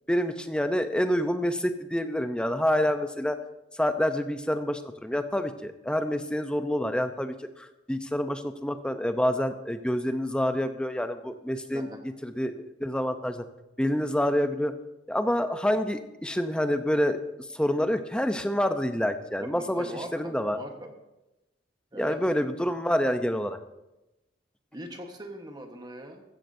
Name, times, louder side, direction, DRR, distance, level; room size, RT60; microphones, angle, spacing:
voice 1, 0.1-3.4 3.7-11.9 12.2-13.4 13.8-14.7 15.1-17.2 17.5-20.6 22.0-23.6, equal, 5° left, 8 dB, 0.6 m, -27 dB
voice 2, 19.4-20.9 21.9-22.2 24.7-26.2, right 1 dB, 20° right, 4 dB, 1.2 m, -40 dB
15.5 x 14.0 x 2.7 m, 0.96 s
head